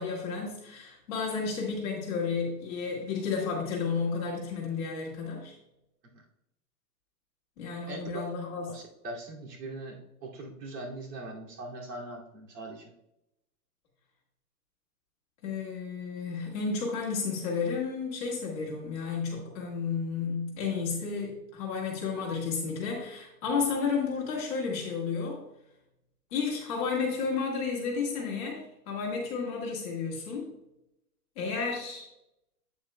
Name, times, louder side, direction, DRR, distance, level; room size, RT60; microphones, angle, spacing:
voice 1, 0.0-5.5 7.6-8.7 15.4-25.4 26.3-30.5 31.3-32.0, left 5 dB, 20° left, -3 dB, 1.6 m, -32 dB
voice 2, 8.7-12.9, right 2 dB, 75° right, -2 dB, 2.6 m, -41 dB
8.6 x 7.7 x 2.2 m, 0.85 s
hypercardioid pair, 175°, 49 cm